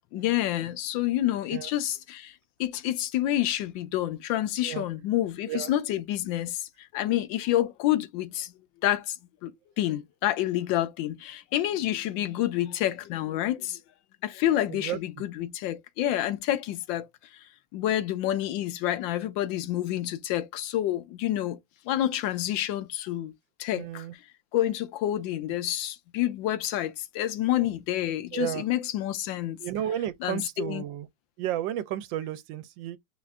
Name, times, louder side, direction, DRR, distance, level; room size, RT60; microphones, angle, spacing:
voice 1, 0.1-2.3 2.6-8.5 8.8-9.2 9.4-13.8 14.2-17.1 17.3-17.4 17.7-21.6 21.9-23.3 23.6-24.0 24.5-29.6 30.2-30.8, left 13 dB, 90° left, 1.4 m, -28 dB
voice 2, 14.7-15.0 23.7-24.1 28.3-28.6 29.6-31.1 31.4-33.0, right 11 dB, 85° right, 1.3 m, -32 dB
5.3 x 2.4 x 3.3 m
omnidirectional pair, 2.0 m